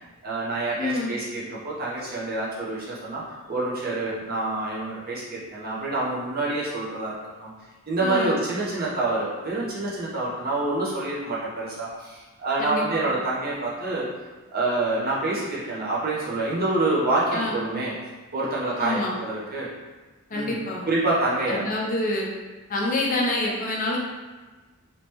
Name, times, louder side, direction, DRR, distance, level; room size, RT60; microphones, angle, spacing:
voice 1, 0.2-3.2 3.5-7.5 7.9-14.1 14.5-17.9 18.3-19.7 20.3-20.6 20.9-21.6, right 2 dB, 45° right, -6 dB, 1.0 m, -27 dB
voice 2, 0.8-1.2 8.0-8.4 12.6-13.1 17.3-17.6 18.8-19.2 20.3-20.8 21.5-22.3 22.7-24.0, left 2 dB, 40° left, -3 dB, 0.6 m, -27 dB
3.2 x 3.0 x 3.0 m, 1.3 s
head